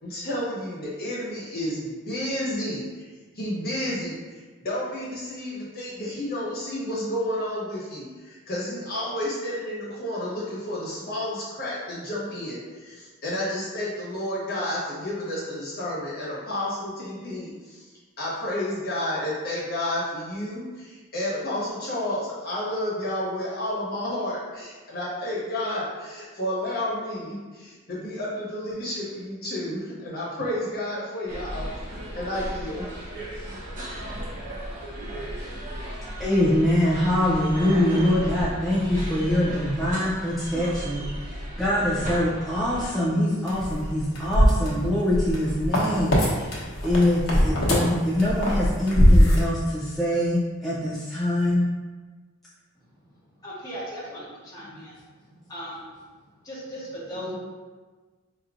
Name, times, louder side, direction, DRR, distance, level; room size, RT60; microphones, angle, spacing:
voice 1, 0.0-3.1 3.3-17.8 18.2-31.7 32.1-32.9, left 1 dB, 45° left, -7 dB, 1.2 m, -31 dB
sound 1, 31.3-42.9, equal, 35° right, 0.9 m, -35 dB
voice 2, 36.2-51.7, left 1 dB, ahead, -9 dB, 0.4 m, -24 dB
sound 2, 43.5-46.3 46.5-49.4, equal, 75° left, 0.9 m, -20 dB
voice 3, 53.4-54.9 55.5-55.8 56.4-57.3, equal, 20° left, -8 dB, 1.1 m, -37 dB
4.7 x 2.8 x 2.5 m, 1.4 s
head